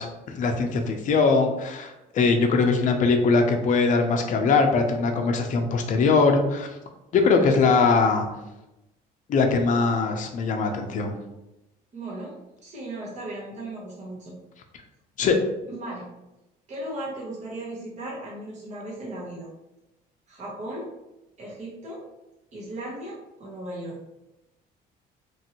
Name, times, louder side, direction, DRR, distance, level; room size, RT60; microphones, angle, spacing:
voice 1, 0.0-6.7 7.1-8.3 9.3-11.1 15.2-15.4, left 4 dB, 50° left, 4 dB, 0.5 m, -21 dB
voice 2, 11.9-12.3 12.6-14.3 15.7-16.1 16.7-19.5 20.3-20.9 21.4-22.0 22.5-24.0, right 1 dB, 45° right, -5 dB, 1.1 m, -36 dB
3.1 x 2.6 x 2.8 m, 0.96 s
cardioid pair, 110°, 17 cm